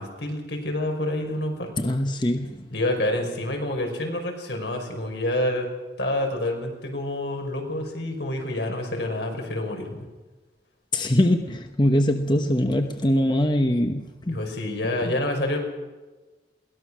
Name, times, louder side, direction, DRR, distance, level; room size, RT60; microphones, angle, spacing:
voice 1, 0.0-1.7 2.7-5.7 6.0-10.1 14.3-15.6, left 1 dB, 80° left, 2 dB, 5.4 m, -28 dB
voice 2, 1.8-2.7 10.9-14.4 15.1-15.2, left 1 dB, 25° left, 6 dB, 1.0 m, -23 dB
22.0 x 18.5 x 6.3 m, 1.2 s
head